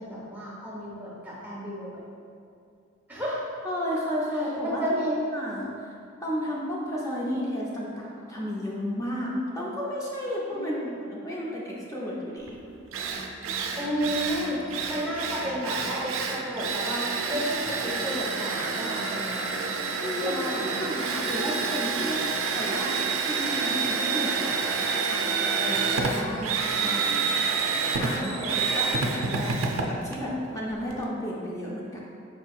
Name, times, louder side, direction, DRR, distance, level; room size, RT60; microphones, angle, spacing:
voice 1, 0.0-2.0 3.1-3.4 4.3-5.2 10.5-10.9 13.7-14.6 14.9-19.4 20.2-20.8 28.1-29.0, equal, 10° right, -7 dB, 1.0 m, -32 dB
voice 2, 3.6-5.0 5.3-5.9 6.2-10.8 11.1-12.6 20.0-23.0 23.3-27.3 28.0-29.6 29.9-32.0, equal, 15° left, -5 dB, 0.5 m, -33 dB
Drill, 12.5-12.6 12.9-31.0, right 4 dB, 85° right, 0.4 m, -28 dB
4.8 x 4.4 x 2.4 m, 2.4 s
head